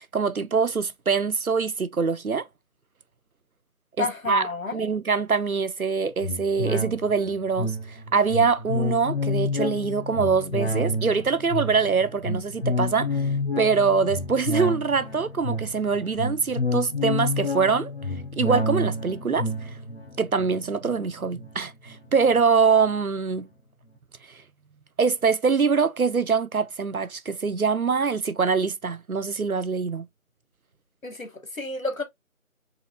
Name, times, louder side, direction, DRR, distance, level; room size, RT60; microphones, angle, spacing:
voice 1, 0.0-2.5 4.0-4.4 4.7-13.3 13.6-17.9 18.3-19.7 20.2-23.5 24.3-24.4 25.0-30.1, right 5 dB, 85° right, 0.8 m, -24 dB
voice 2, 4.0-4.8 31.0-32.0, left 3 dB, 70° left, 1.3 m, -30 dB
sound 1, 6.2-22.0 22.4-22.5, left 2 dB, 45° left, 1.5 m, -29 dB
4.9 x 4.1 x 2.2 m
figure-of-eight pair, 170°, 42 cm